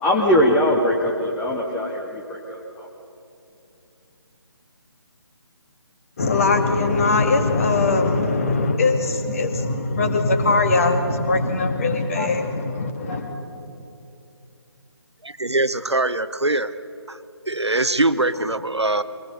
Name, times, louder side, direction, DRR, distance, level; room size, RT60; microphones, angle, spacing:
voice 1, 0.0-2.9 12.1-12.3 13.1-13.2 13.5-13.6, left 1 dB, 5° left, -2 dB, 0.4 m, -22 dB
voice 2, 6.2-13.3, left 3 dB, 35° left, 6 dB, 1.7 m, -21 dB
voice 3, 15.2-16.8 17.1-19.0, right 2 dB, 85° right, 12 dB, 1.0 m, -23 dB
23.5 x 19.0 x 6.7 m, 2.7 s
figure-of-eight pair, 150°, 14 cm